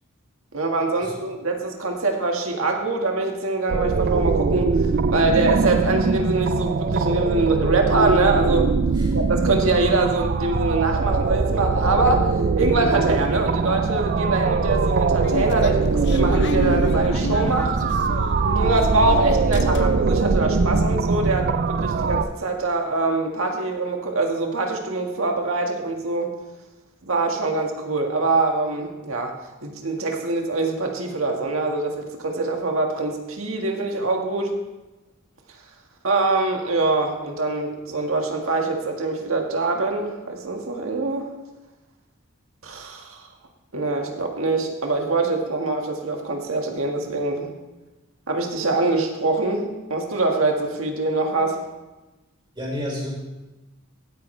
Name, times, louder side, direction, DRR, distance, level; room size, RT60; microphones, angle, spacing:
voice 1, 0.5-4.7 5.1-8.7 9.1-12.3 12.6-17.8 18.5-26.3 27.0-29.3 29.6-34.5 36.0-41.3 42.6-43.2 43.7-47.5 48.3-51.6, right 3 dB, 80° right, 2 dB, 1.7 m, -24 dB
sound 1, 3.7-22.2, right 4 dB, 50° right, 0.4 m, -22 dB
sound 2, 14.6-19.1 19.3-20.2 20.6-20.7 20.9-21.1, left 3 dB, 60° left, 0.7 m, -32 dB
voice 2, 52.5-53.1, left 1 dB, 25° right, -5 dB, 4.6 m, -31 dB
16.5 x 9.2 x 3.3 m, 1.1 s
head